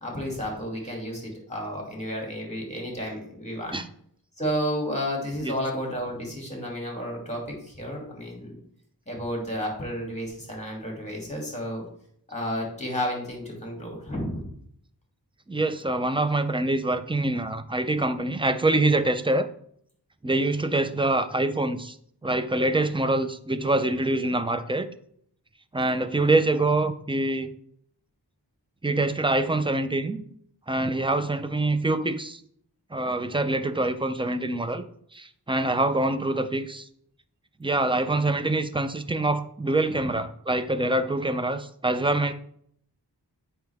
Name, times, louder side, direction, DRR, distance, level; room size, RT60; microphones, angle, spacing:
voice 1, 0.0-3.7 4.4-8.6 9.1-11.8 12.3-14.5 40.0-40.1, equal, 15° left, -1 dB, 2.6 m, -32 dB
voice 2, 15.5-19.5 20.2-22.0 22.2-24.9 25.7-27.5 28.8-30.2 30.7-32.4 32.9-34.8 35.1-36.9 37.6-42.3, right 2 dB, 15° right, 10 dB, 0.5 m, -25 dB
7.6 x 5.6 x 3.5 m, 0.66 s
wide cardioid pair, 55°, 41 cm